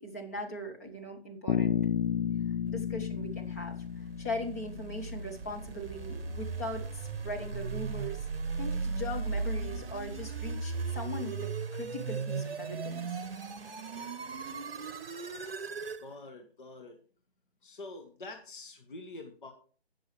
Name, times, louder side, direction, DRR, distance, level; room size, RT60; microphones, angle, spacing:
voice 1, 0.0-1.8 2.7-3.8 4.2-8.2 8.6-13.2, left 1 dB, 15° left, 1 dB, 0.8 m, -40 dB
Bass guitar, 1.5-5.4, left 8 dB, 65° left, 0.4 m, -32 dB
sound 1, 3.8-16.0, right 4 dB, 60° right, 0.9 m, -37 dB
sound 2, 5.3-10.6, right 2 dB, 10° right, 0.9 m, -46 dB
voice 2, 16.0-17.0 17.6-19.5, left 2 dB, 50° left, 4 dB, 1.4 m, -46 dB
17.0 x 6.2 x 3.2 m, 0.41 s
figure-of-eight pair, 160°, 32 cm